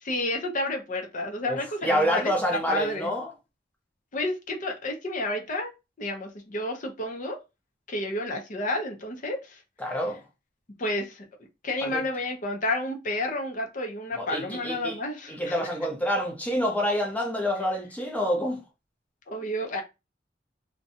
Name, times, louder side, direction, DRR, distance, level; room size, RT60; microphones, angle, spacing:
voice 1, 0.0-2.3 2.7-3.1 4.1-5.7 6.0-7.4 7.9-9.6 10.8-11.2 11.6-15.6 19.3-19.8, left 1 dB, 45° left, 0.6 m, -30 dB
voice 2, 1.4-3.3 9.8-10.2 11.8-12.0 14.1-15.0 15.3-18.6, equal, 10° left, 0.7 m, -27 dB
2.6 x 2.2 x 2.6 m
head